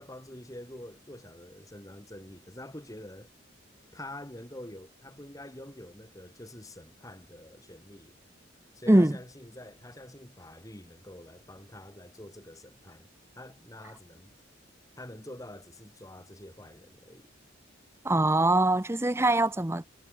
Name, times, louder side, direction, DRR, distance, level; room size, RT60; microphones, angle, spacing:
voice 1, 0.0-3.3 3.9-8.2 8.7-13.1 13.3-14.4 15.0-17.3, left 1 dB, 15° left, 3.9 m, -46 dB
voice 2, 18.0-19.9, right 1 dB, 15° right, 0.7 m, -23 dB
head